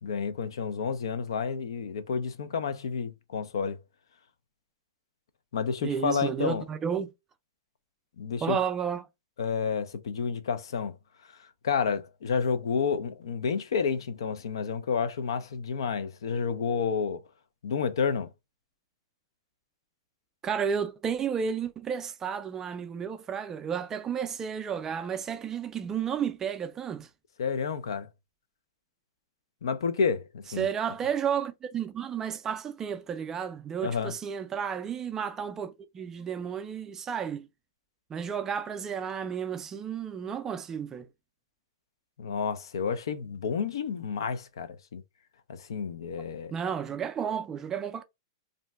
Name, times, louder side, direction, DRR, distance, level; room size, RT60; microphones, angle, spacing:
voice 1, 0.0-3.8 5.5-6.6 8.2-8.6 9.4-11.0 11.6-17.2 17.6-18.3 27.4-28.1 29.6-30.7 33.8-34.1 42.2-45.0 45.5-46.5, left 6 dB, 80° left, 0.4 m, -30 dB
voice 2, 5.8-7.1 8.4-9.1 20.4-27.1 30.6-37.5 38.1-41.1 46.5-48.0, right 7 dB, 20° right, 0.3 m, -32 dB
2.5 x 2.1 x 3.3 m
hypercardioid pair, 135°, 2 cm